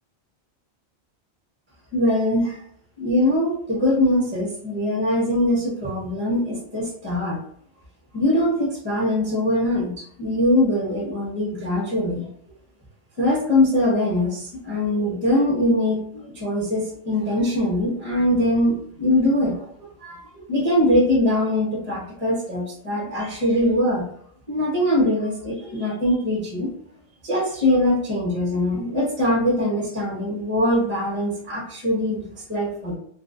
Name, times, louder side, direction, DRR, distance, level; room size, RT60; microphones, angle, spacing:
voice 1, 1.9-2.6 3.0-7.4 8.1-12.3 13.2-19.7 20.0-24.0 24.5-26.7 27.2-33.0, left 1 dB, 10° right, -4 dB, 0.7 m, -22 dB
2.4 x 2.1 x 2.4 m, 0.64 s
omnidirectional pair, 1.1 m